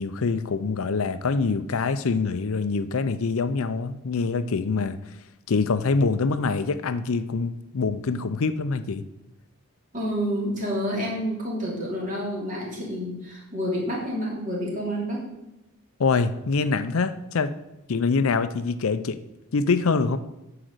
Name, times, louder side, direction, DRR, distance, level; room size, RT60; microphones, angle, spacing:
voice 1, 0.0-5.0 5.5-9.0 16.0-17.5 17.9-19.2 19.5-20.2, left 4 dB, 70° left, 12 dB, 0.5 m, -25 dB
voice 2, 9.9-15.3, equal, 35° right, -3 dB, 2.8 m, -29 dB
10.0 x 4.9 x 6.6 m, 0.93 s
head